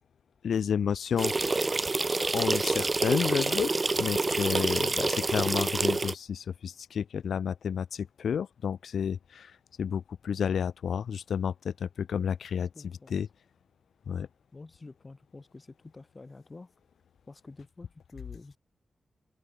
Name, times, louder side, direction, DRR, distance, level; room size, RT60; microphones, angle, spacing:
voice 1, 0.4-1.3 2.3-12.7 13.1-13.3 14.1-14.3, left 7 dB, 85° left, 0.4 m, -31 dB
sound 1, 1.2-6.1, right 3 dB, 35° right, 0.3 m, -27 dB
voice 2, 12.6-13.2 14.1-14.3 14.5-16.7 17.3-18.6, left 3 dB, 35° left, 2.1 m, -49 dB
open air
cardioid pair, 60°, 0 cm